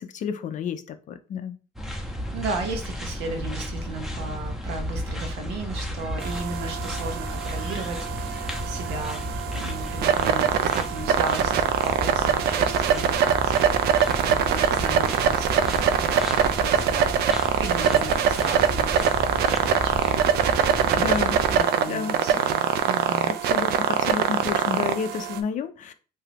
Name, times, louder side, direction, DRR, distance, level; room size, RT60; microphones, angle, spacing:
voice 1, 0.0-1.6 21.0-21.4 21.9-22.2 23.3-25.9, left 6 dB, 50° left, 10 dB, 0.4 m, -30 dB
sound 1, 1.8-21.6, equal, ahead, 0.6 m, -33 dB
voice 2, 1.9-9.3 9.5-21.1 21.5-23.3, right 3 dB, 90° right, 4 dB, 0.8 m, -36 dB
sound 2, 6.2-25.4, right 8 dB, 70° right, 0.4 m, -23 dB
2.7 x 2.3 x 3.4 m, 0.35 s
cardioid pair, 110°, 17 cm